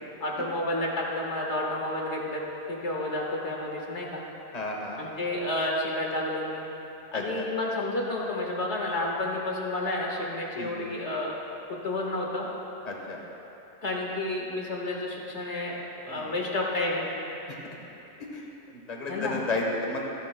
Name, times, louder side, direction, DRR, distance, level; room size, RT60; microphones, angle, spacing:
voice 1, 0.2-4.2 5.0-6.6 7.1-11.4 11.7-12.5 13.8-17.1 19.1-19.4, left 2 dB, 80° left, -2 dB, 1.9 m, -30 dB
voice 2, 4.5-5.2 7.1-7.4 10.6-10.7 12.8-13.2 16.1-16.3 17.6-17.8 18.3-20.1, left 2 dB, 35° left, -1 dB, 1.4 m, -33 dB
26.5 x 10.0 x 2.2 m, 3.0 s
omnidirectional pair, 1.1 m